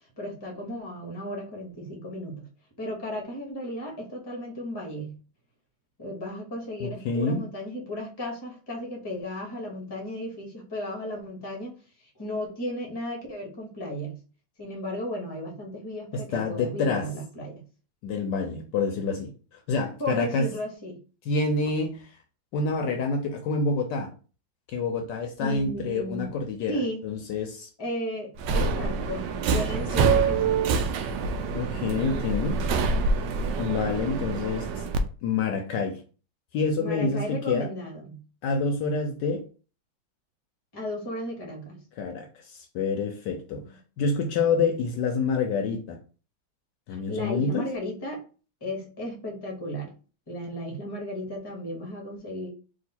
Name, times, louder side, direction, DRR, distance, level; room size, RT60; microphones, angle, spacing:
voice 1, 0.2-2.5 2.8-5.1 6.0-11.7 12.1-14.2 14.6-17.6 20.0-21.0 25.4-26.4 26.7-27.0 27.8-30.6 36.8-38.2 40.7-41.8 43.7-43.8 46.9-48.2 48.6-49.9 50.3-52.5, equal, 20° left, 0.8 m, -34 dB
voice 2, 6.8-7.4 16.1-17.1 18.0-20.5 21.3-22.2 22.5-24.1 24.7-26.7 27.0-27.7 30.0-30.1 31.5-32.6 33.6-34.8 35.2-36.0 36.5-37.7 38.4-39.4 42.0-43.7 44.0-46.0 46.9-47.6, left 4 dB, 70° left, 1.1 m, -27 dB
Subway metro underground, 28.4-35.0, right 4 dB, 75° right, 1.2 m, -26 dB
3.8 x 2.7 x 4.2 m
omnidirectional pair, 2.1 m